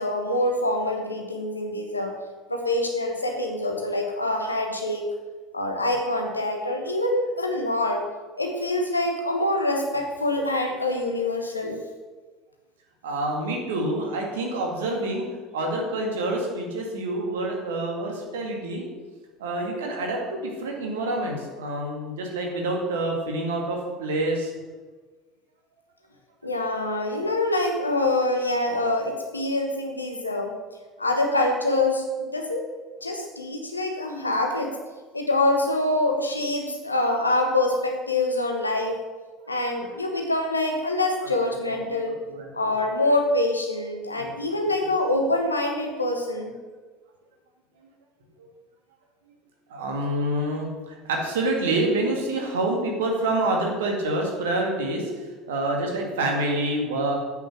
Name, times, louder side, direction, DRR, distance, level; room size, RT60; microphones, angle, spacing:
voice 1, 0.0-2.1 2.5-5.1 5.5-8.0 8.4-11.8 26.4-30.6 31.0-32.7 33.0-34.7 35.1-39.0 39.5-42.2 42.5-46.5, left 2 dB, 85° left, 3 dB, 1.2 m, -25 dB
voice 2, 13.0-15.3 15.5-18.9 19.4-24.5 41.2-41.3 41.7-41.8 42.1-42.5 44.2-44.3 48.4-48.5 49.7-57.1, right 2 dB, 65° right, 0 dB, 2.0 m, -27 dB
8.3 x 6.3 x 6.3 m, 1.4 s
figure-of-eight pair, 70°, 0 cm